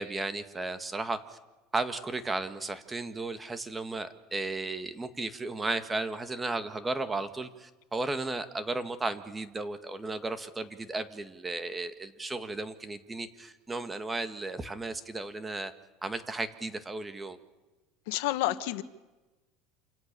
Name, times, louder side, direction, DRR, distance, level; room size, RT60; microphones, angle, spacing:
voice 1, 0.0-1.4 1.7-15.7 16.0-17.4, right 2 dB, 15° right, 10 dB, 1.9 m, -34 dB
voice 2, 18.1-18.8, left 16 dB, 80° left, 12 dB, 1.5 m, -29 dB
28.0 x 26.5 x 6.9 m, 1.1 s
supercardioid pair, 125°, 0 cm